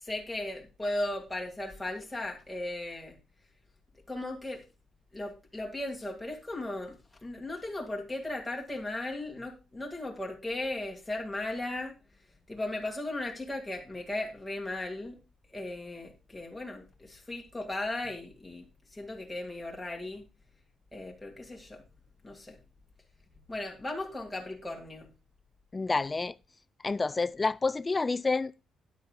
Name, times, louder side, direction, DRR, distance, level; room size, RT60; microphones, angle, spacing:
voice 1, 0.0-3.2 4.1-4.6 5.1-12.0 12.5-15.2 15.5-20.3 20.9-21.8 22.2-22.6 23.5-25.1, left 1 dB, 5° left, 1.9 m, -37 dB
voice 2, 25.7-26.4 26.8-28.6, left 3 dB, 20° left, 0.4 m, -29 dB
12.5 x 9.4 x 2.2 m
cardioid pair, 130°, 0 cm